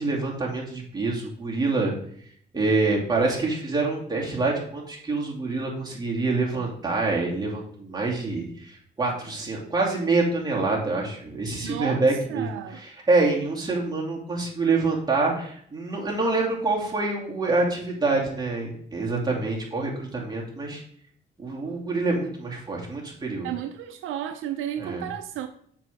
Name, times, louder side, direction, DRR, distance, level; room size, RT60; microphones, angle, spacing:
voice 1, 0.0-1.9 2.5-20.8 21.4-23.5 24.8-25.1, right 3 dB, 20° right, 2.5 m, -26 dB
voice 2, 11.6-12.8 23.4-25.5, right 10 dB, 85° right, 0.6 m, -33 dB
7.2 x 5.6 x 3.5 m
cardioid pair, 90°, 20 cm